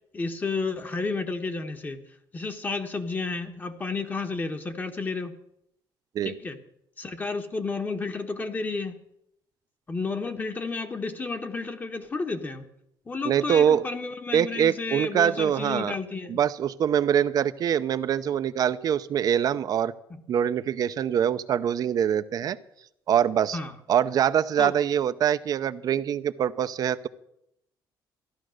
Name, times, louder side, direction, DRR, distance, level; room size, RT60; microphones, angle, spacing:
voice 1, 0.1-2.0 2.3-5.4 6.2-6.6 7.0-9.0 9.9-12.6 13.1-16.4 20.1-20.2 23.5-23.7 24.6-24.7, left 3 dB, 20° left, 7 dB, 1.1 m, -31 dB
voice 2, 13.2-13.8 14.3-15.9 16.3-19.9 20.3-22.6 23.1-23.6 23.9-27.1, right 9 dB, 50° right, 14 dB, 0.6 m, -24 dB
14.5 x 12.0 x 6.4 m, 0.77 s
cardioid pair, 150°, 8 cm